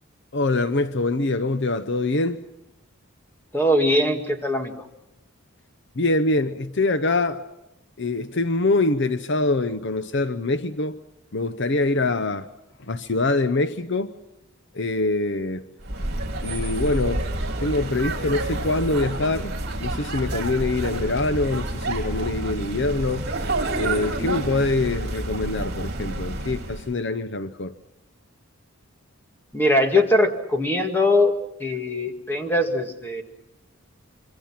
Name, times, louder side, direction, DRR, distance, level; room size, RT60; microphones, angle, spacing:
voice 1, 0.3-2.4 6.0-7.4 8.0-11.0 11.3-12.5 12.8-14.1 14.7-15.6 16.4-17.3 17.6-19.5 19.8-23.3 23.8-27.7, left 2 dB, 55° left, 0.8 m, -24 dB
voice 2, 3.5-4.9 29.5-31.3 31.6-33.2, left 1 dB, 10° left, 2.0 m, -21 dB
sound 1, 15.8-26.9, right 2 dB, 50° right, 4.2 m, -29 dB
26.5 x 24.5 x 5.9 m
head